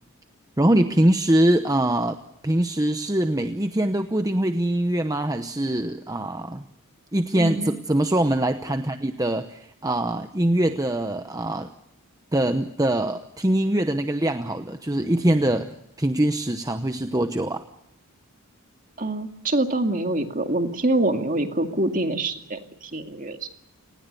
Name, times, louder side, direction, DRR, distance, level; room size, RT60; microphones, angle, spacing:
voice 1, 0.6-2.2 2.4-6.7 7.1-11.7 12.3-17.6, right 1 dB, 15° right, 8 dB, 0.8 m, -23 dB
voice 2, 7.4-7.7 19.0-23.5, right 2 dB, 35° right, 6 dB, 2.3 m, -25 dB
29.0 x 19.5 x 6.7 m, 0.77 s
head